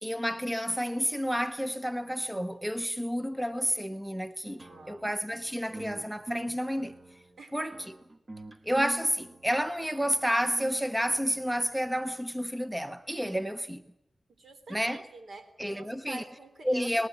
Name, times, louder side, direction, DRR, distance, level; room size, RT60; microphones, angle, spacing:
voice 1, 0.0-6.9 7.5-8.0 8.6-13.8 14.7-15.0 15.6-16.2 16.6-17.1, equal, 5° right, 0.8 m, -30 dB
voice 2, 4.4-5.0 7.4-7.7 14.3-17.1, right 2 dB, 65° right, 3.6 m, -48 dB
sound 1, 4.6-12.0, right 2 dB, 35° right, 1.4 m, -45 dB
25.5 x 20.0 x 8.6 m
wide cardioid pair, 85°, 0 cm